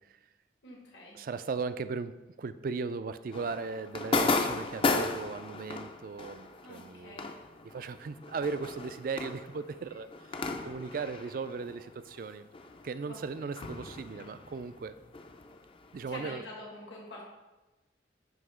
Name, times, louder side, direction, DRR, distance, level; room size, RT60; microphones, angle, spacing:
voice 1, 0.6-1.2 6.6-7.3 13.0-13.4 16.1-17.2, left 1 dB, 80° left, -3 dB, 1.5 m, -46 dB
voice 2, 1.1-7.3 7.6-12.5 12.8-15.0 15.9-16.4, right 4 dB, 50° right, 13 dB, 0.3 m, -37 dB
sound 1, 3.3-12.3 12.5-16.1, left 3 dB, 30° left, 0.4 m, -35 dB
7.8 x 2.8 x 6.0 m, 1.1 s
head